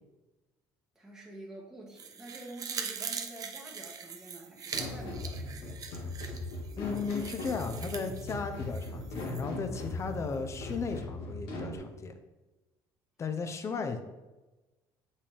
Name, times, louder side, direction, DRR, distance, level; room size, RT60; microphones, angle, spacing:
voice 1, 0.9-5.8, right 1 dB, 5° right, -3 dB, 1.3 m, -48 dB
sound 1, 2.0-9.4 9.8-9.9, right 6 dB, 40° right, 0.8 m, -42 dB
sound 2, 4.7-11.8, left 2 dB, 80° left, 1.9 m, -39 dB
voice 2, 6.8-12.1 13.2-14.0, left 5 dB, 35° left, 7 dB, 0.8 m, -35 dB
6.9 x 5.5 x 3.5 m, 1.1 s
cardioid pair, 105°, 9 cm